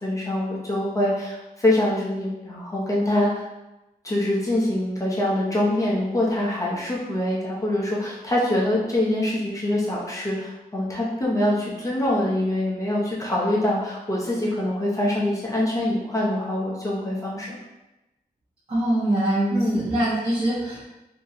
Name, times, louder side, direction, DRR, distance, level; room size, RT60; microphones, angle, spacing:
voice 1, 0.0-3.4 4.0-17.6 19.5-19.8, left 1 dB, 20° left, -5 dB, 0.7 m, -24 dB
voice 2, 18.7-20.8, right 1 dB, 30° right, -11 dB, 0.9 m, -23 dB
2.7 x 2.3 x 3.8 m, 0.97 s
wide cardioid pair, 165°, 16 cm